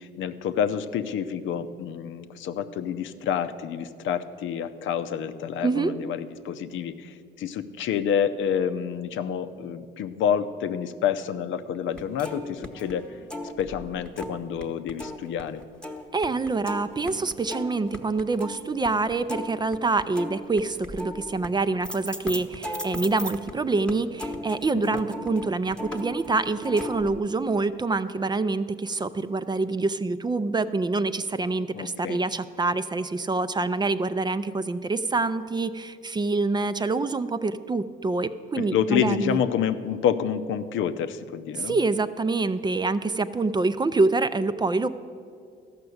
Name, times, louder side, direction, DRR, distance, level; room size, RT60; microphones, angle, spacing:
voice 1, 0.0-15.6 24.7-25.0 31.7-32.2 38.5-41.8, left 8 dB, 80° left, 10 dB, 0.6 m, -28 dB
sound 1, 11.9-14.6 14.9-23.5 23.9-27.2, left 1 dB, 5° left, 1.0 m, -37 dB
voice 2, 16.1-39.4 41.6-44.9, right 3 dB, 20° right, 13 dB, 0.4 m, -26 dB
13.5 x 5.9 x 7.9 m, 2.2 s
cardioid pair, 90°, 20 cm